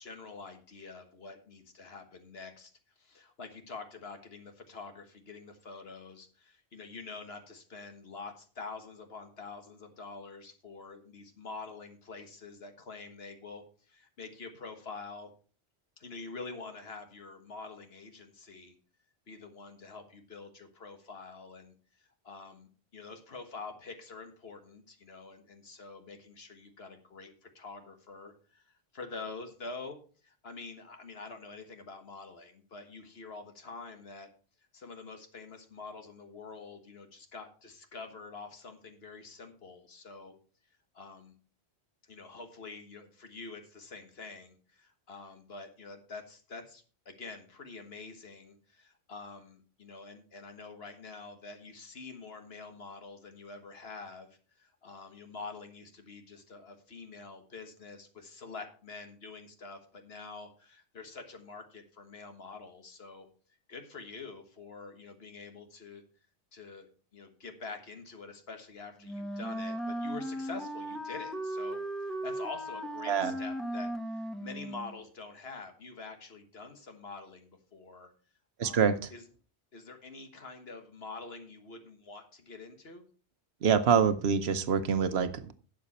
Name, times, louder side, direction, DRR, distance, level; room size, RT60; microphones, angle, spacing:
voice 1, 0.0-2.7 3.0-15.3 16.0-18.8 19.3-21.7 22.2-34.3 34.7-40.3 40.9-41.3 42.0-54.3 54.6-63.3 63.7-66.0 66.5-78.1 78.6-79.2 79.7-83.0, left 4 dB, 65° left, 1.7 m, -46 dB
Wind instrument woodwind instrument, 69.0-75.0, right 1 dB, ahead, 0.8 m, -37 dB
voice 2, 78.6-79.0 83.6-85.6, right 7 dB, 70° right, 1.0 m, -26 dB
12.0 x 7.5 x 4.2 m
omnidirectional pair, 1.1 m